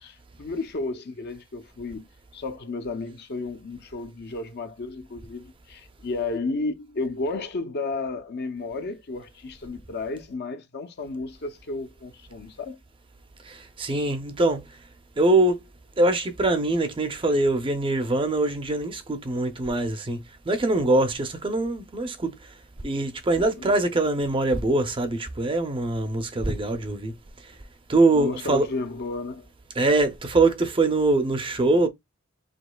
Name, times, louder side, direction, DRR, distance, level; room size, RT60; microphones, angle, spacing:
voice 1, 0.0-12.8 23.6-23.7 28.1-29.5, left 3 dB, 50° left, 0.6 m, -33 dB
voice 2, 13.4-14.6 15.2-15.6 16.0-22.4 22.8-27.1 27.9-28.7 29.8-31.9, right 2 dB, 25° right, 0.6 m, -23 dB
5.2 x 3.6 x 2.3 m
head